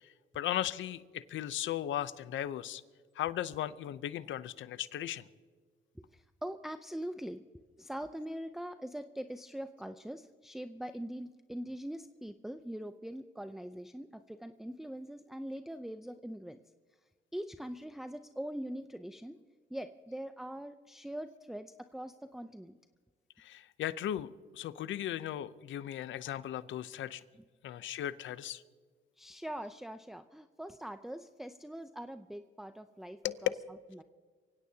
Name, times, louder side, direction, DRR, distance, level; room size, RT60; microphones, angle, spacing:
voice 1, 0.0-2.8 3.2-5.3 23.4-27.2 27.6-28.6 33.2-33.5, left 12 dB, 75° left, 15 dB, 0.7 m, -37 dB
voice 2, 6.0-7.4 7.8-16.6 17.3-19.4 19.7-22.8 27.3-27.4 29.2-33.5 33.9-34.0, equal, ahead, 8 dB, 0.6 m, -42 dB
24.5 x 16.5 x 2.8 m, 1.5 s
cardioid pair, 90°, 20 cm